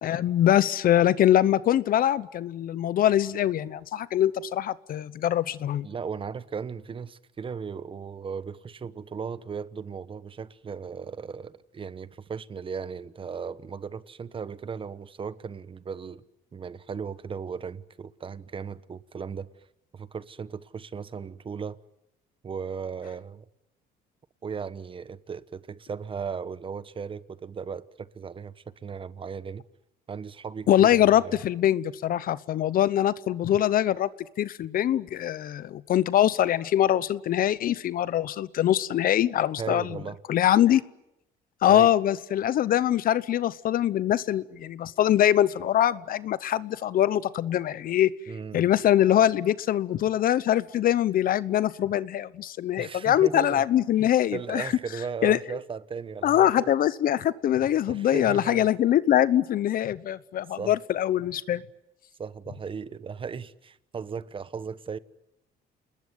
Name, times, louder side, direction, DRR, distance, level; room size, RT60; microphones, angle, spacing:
voice 1, 0.0-5.9 30.7-34.1 34.4-40.0 40.3-40.8 41.6-48.1 48.5-54.7 55.2-55.4 56.2-61.6, left 11 dB, 60° left, 0.9 m, -23 dB
voice 2, 5.8-16.2 16.5-19.5 19.9-21.8 22.4-23.4 24.4-29.6 30.1-31.4 39.6-40.2 41.7-41.9 48.3-48.7 52.8-53.6 54.0-56.7 57.9-58.7 60.6-60.7 62.2-65.0, right 6 dB, 30° right, 1.2 m, -36 dB
29.0 x 21.0 x 9.5 m
cardioid pair, 110°, 17 cm